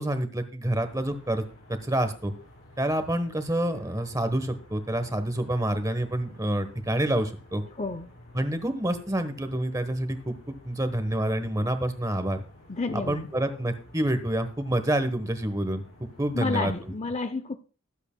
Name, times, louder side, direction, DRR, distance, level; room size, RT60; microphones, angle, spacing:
voice 1, 0.0-1.4 1.7-2.3 2.8-7.6 8.3-12.4 12.9-16.7, right 1 dB, 15° right, 1.1 m, -28 dB
sound 1, 0.7-16.9, left 1 dB, 65° left, 5.8 m, -53 dB
voice 2, 7.8-8.1 12.7-13.3 16.3-17.6, left 3 dB, 30° left, 0.5 m, -30 dB
21.5 x 8.0 x 2.2 m
head